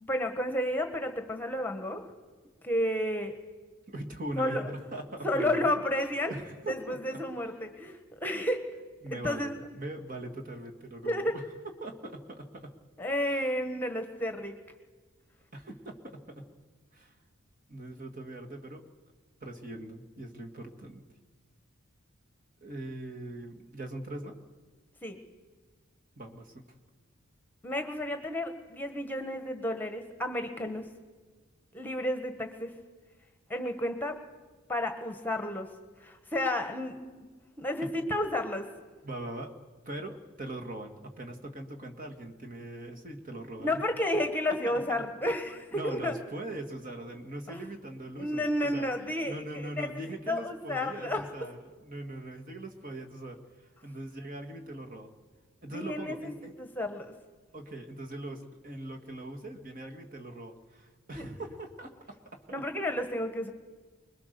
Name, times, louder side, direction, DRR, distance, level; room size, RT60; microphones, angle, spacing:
voice 1, 0.0-2.0 2.6-3.3 4.4-4.6 5.2-6.3 6.7-8.6 9.1-9.6 11.0-11.4 13.0-14.6 25.0-25.2 27.6-30.8 31.7-32.7 33.5-34.2 34.7-35.7 36.0-37.0 37.6-38.7 43.6-46.1 47.5-47.7 48.2-49.9 50.3-51.2 55.7-56.3 56.6-57.1 61.1-61.2 62.5-63.5, left 1 dB, 10° left, 6 dB, 1.4 m, -31 dB
voice 2, 3.9-5.7 6.2-7.2 9.0-11.4 11.8-12.8 13.2-13.5 15.5-16.5 16.9-17.2 17.7-18.8 19.4-21.0 22.6-24.4 26.2-26.6 37.8-37.9 39.0-39.6 39.9-43.8 44.7-44.8 45.7-48.9 49.2-55.1 55.6-56.5 57.5-62.4, right 1 dB, 40° right, 3 dB, 2.1 m, -41 dB
25.5 x 21.5 x 6.9 m, 1.4 s
head